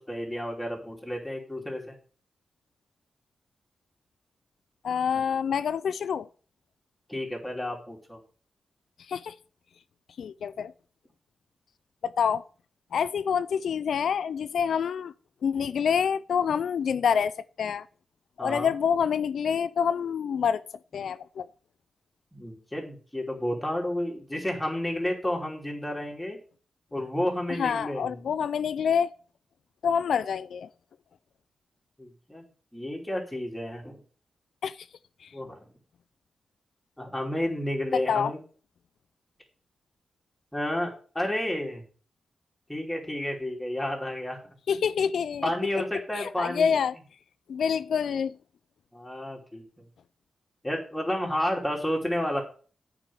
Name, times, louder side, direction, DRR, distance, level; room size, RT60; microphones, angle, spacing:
voice 1, 0.1-1.9 7.1-8.2 18.4-18.7 22.3-26.4 26.9-28.2 32.0-32.4 32.7-34.0 35.3-35.6 37.0-38.4 40.5-41.8 42.7-44.4 45.4-46.7 48.9-49.7 50.6-52.4, left 1 dB, 5° left, 2.8 m, -31 dB
voice 2, 4.8-6.3 9.1-9.3 10.2-10.7 12.0-12.4 12.9-15.1 15.4-17.9 18.4-20.6 20.9-21.5 27.6-29.1 29.8-30.7 34.6-34.8 35.2-35.3 37.9-38.3 44.7-45.5 46.1-46.9 47.5-48.4, left 7 dB, 85° left, 0.3 m, -27 dB
8.8 x 4.9 x 6.9 m
wide cardioid pair, 105°, 0 cm